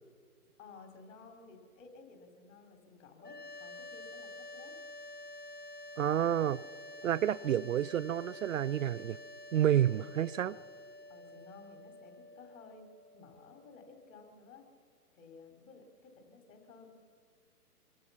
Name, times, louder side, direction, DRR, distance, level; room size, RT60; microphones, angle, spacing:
voice 1, 0.6-4.8 7.0-7.1 9.8-10.4 11.1-12.8 13.1-14.7 15.1-17.0, left 4 dB, 55° left, 4.3 m, -55 dB
sound 1, 3.2-14.3, left 2 dB, 80° left, 1.7 m, -49 dB
voice 2, 6.0-6.6 7.0-9.2 9.5-10.6, right 10 dB, 55° right, 0.5 m, -29 dB
25.0 x 24.5 x 5.9 m
hypercardioid pair, 140°, 47 cm